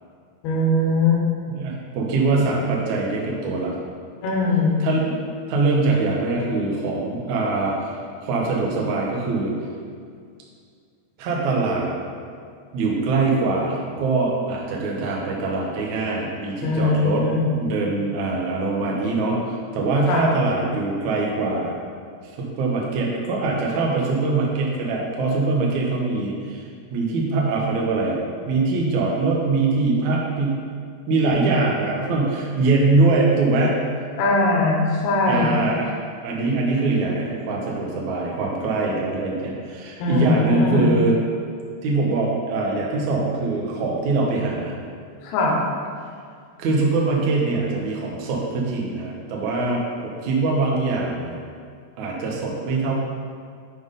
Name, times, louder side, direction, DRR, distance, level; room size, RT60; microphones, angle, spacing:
voice 1, 0.4-1.2 4.2-4.8 16.6-17.4 20.1-20.3 34.2-35.6 40.0-41.0 45.2-45.6, left 3 dB, 70° left, -2 dB, 2.8 m, -20 dB
voice 2, 1.5-3.7 4.8-5.2 5.5-7.9 8.2-9.5 11.2-12.0 12.7-21.7 22.2-28.2 28.5-30.6 31.1-33.9 35.3-36.0 36.2-41.2 41.8-44.7 46.6-51.4 52.0-52.9, right 3 dB, 90° right, -2 dB, 1.6 m, -23 dB
8.6 x 3.8 x 5.2 m, 2.2 s
omnidirectional pair, 5.0 m